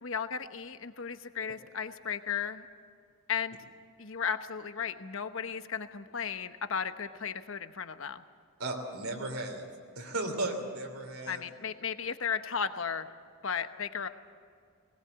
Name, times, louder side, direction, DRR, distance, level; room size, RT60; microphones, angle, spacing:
voice 1, 0.0-2.7 3.3-3.6 4.0-8.2 11.3-13.1 13.4-14.1, left 6 dB, 60° left, 10 dB, 1.0 m, -35 dB
voice 2, 8.6-9.7 9.9-11.4, right 2 dB, 80° right, 1 dB, 3.0 m, -35 dB
20.0 x 20.0 x 8.0 m, 2.1 s
head